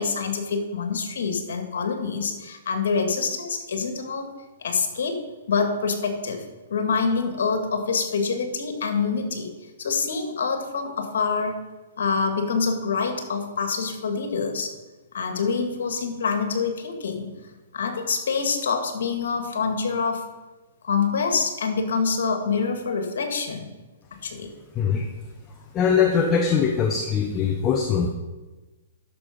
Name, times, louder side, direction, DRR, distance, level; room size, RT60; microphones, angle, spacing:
voice 1, 0.0-4.3 4.6-5.2 5.5-6.4 6.7-9.5 9.8-11.6 12.0-14.7 15.1-17.3 17.7-20.3 20.8-23.7 24.2-24.5, left 5 dB, 70° left, 5 dB, 2.1 m, -26 dB
voice 2, 24.7-25.1 25.7-28.1, left 6 dB, 25° left, 3 dB, 1.0 m, -21 dB
11.5 x 6.9 x 5.3 m, 1.2 s
hypercardioid pair, 130°, 0 cm